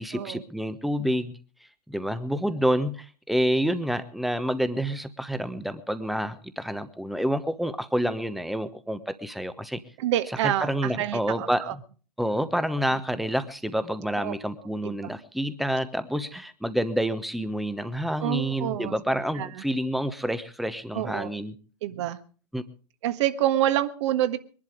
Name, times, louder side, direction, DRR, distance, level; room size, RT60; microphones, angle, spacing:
voice 1, 0.0-1.4 1.9-9.8 10.4-11.8 12.2-21.6 22.5-22.6, equal, ahead, 13 dB, 1.1 m, -28 dB
voice 2, 10.0-11.7 14.2-14.3 14.8-15.1 18.2-19.0 19.3-19.6 20.9-21.3 21.8-22.2 23.0-24.4, right 12 dB, 45° right, 11 dB, 1.5 m, -27 dB
22.5 x 11.5 x 5.1 m, 0.41 s
figure-of-eight pair, 105°, 21 cm